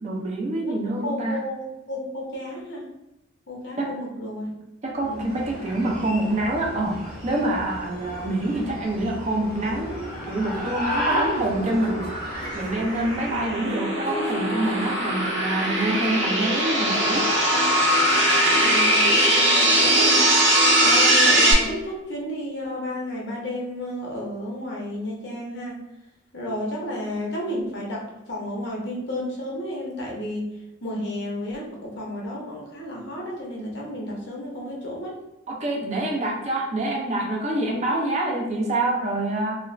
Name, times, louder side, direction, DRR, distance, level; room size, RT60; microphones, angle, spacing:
voice 1, 0.0-1.4 3.8-3.9 4.8-10.0 10.3-17.3 35.5-39.6, right 1 dB, 35° right, -1 dB, 0.5 m, -26 dB
voice 2, 0.6-2.8 3.5-4.5 5.0-5.4 18.5-20.2 20.8-25.8 26.3-30.5 30.8-35.2, left 1 dB, 60° left, -3 dB, 0.8 m, -32 dB
sound 1, 5.0-13.6, equal, ahead, 1.1 m, -34 dB
sound 2, 9.7-13.4 13.7-21.8, left 1 dB, 15° left, 1.1 m, -34 dB
sound 3, 10.7-21.5, right 1 dB, 70° right, 0.7 m, -21 dB
2.4 x 2.4 x 3.1 m, 0.94 s
head